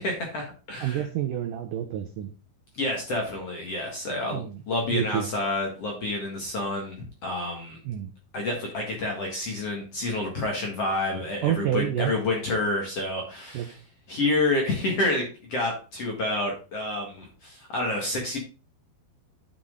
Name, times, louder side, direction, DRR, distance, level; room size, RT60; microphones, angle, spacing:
voice 1, 0.0-1.1 2.7-7.8 8.3-13.8 14.1-18.4, left 2 dB, 50° left, 1 dB, 2.0 m, -29 dB
voice 2, 0.8-2.3 4.3-4.6 4.9-5.3 7.9-8.1 11.4-12.1 13.5-13.7, right 11 dB, 80° right, 6 dB, 1.9 m, -28 dB
10.5 x 6.1 x 3.7 m, 0.34 s
omnidirectional pair, 4.9 m